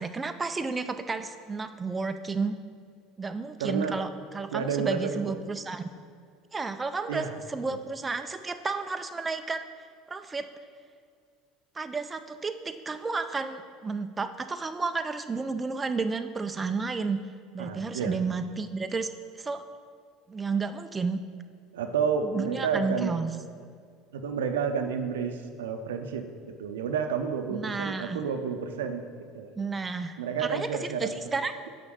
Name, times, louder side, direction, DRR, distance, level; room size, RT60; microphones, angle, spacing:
voice 1, 0.0-2.6 3.2-5.9 6.5-9.7 10.1-10.5 11.8-17.2 17.5-19.1 19.4-19.6 20.3-21.2 22.2-23.3 27.5-28.2 29.6-31.5, right 4 dB, 20° right, 8 dB, 0.4 m, -32 dB
voice 2, 3.6-4.0 4.5-5.1 7.1-7.3 17.6-18.2 21.7-23.1 24.1-29.0 29.3-29.5 30.2-31.2, right 6 dB, 80° right, 7 dB, 0.6 m, -30 dB
6.4 x 5.1 x 6.2 m, 2.1 s
hypercardioid pair, 75°, 0 cm